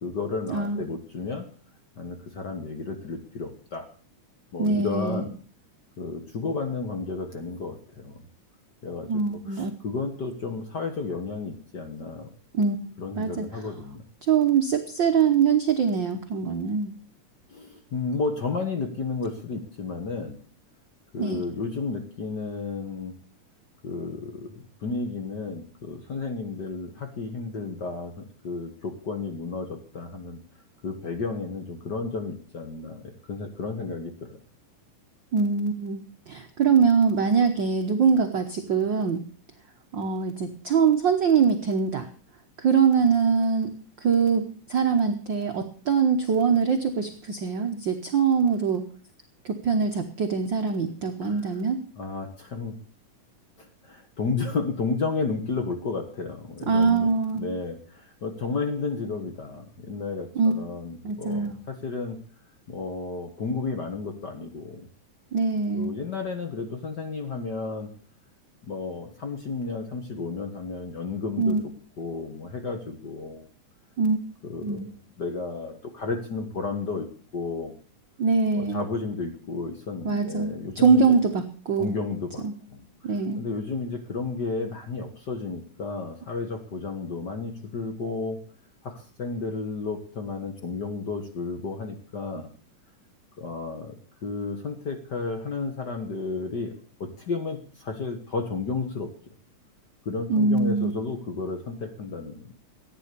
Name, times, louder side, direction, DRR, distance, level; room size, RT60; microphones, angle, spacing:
voice 1, 0.0-1.5 2.0-3.9 4.5-5.4 6.0-8.2 8.8-12.3 13.0-14.0 17.5-20.4 21.1-23.1 23.8-30.4 30.8-34.4 51.2-51.4 52.0-52.8 53.6-62.2 62.7-64.9 65.7-67.9 68.7-71.6 72.0-73.5 74.4-74.8 75.2-77.1 77.3-77.7 78.5-81.1 81.8-82.4 82.7-82.9 83.4-88.4 88.8-92.5 93.4-96.7 97.0-99.1 100.0-102.5, left 4 dB, 45° left, 5 dB, 1.6 m, -32 dB
voice 2, 4.6-5.2 9.1-9.7 12.6-12.8 13.1-13.4 14.3-16.9 21.2-21.4 35.3-39.2 39.9-42.1 42.6-48.9 49.4-51.8 56.7-57.5 60.3-60.5 61.0-61.6 65.3-65.9 71.4-71.6 74.0-74.2 74.6-74.9 78.2-78.8 80.0-82.0 82.4-82.5 83.0-83.4 100.3-100.9, right 5 dB, 65° right, 5 dB, 1.1 m, -23 dB
14.5 x 9.7 x 6.9 m, 0.42 s
omnidirectional pair, 3.6 m